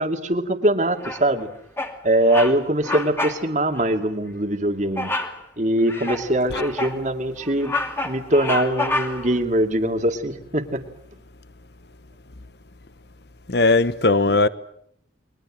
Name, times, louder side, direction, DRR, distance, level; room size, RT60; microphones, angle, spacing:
voice 1, 0.0-1.5 2.0-5.1 5.6-7.7 8.0-10.8 14.3-14.4, right 1 dB, 40° right, 2.4 m, -22 dB
Bird vocalization bird call bird song, 1.0-1.4 1.8-2.0 2.3-2.6 2.8-3.4 3.7-3.9 5.0-5.4 5.9-7.0 7.4-9.3, left 2 dB, 10° left, 2.4 m, -28 dB
voice 2, 13.5-14.5, left 3 dB, 55° left, 1.1 m, -18 dB
30.0 x 22.5 x 7.6 m
head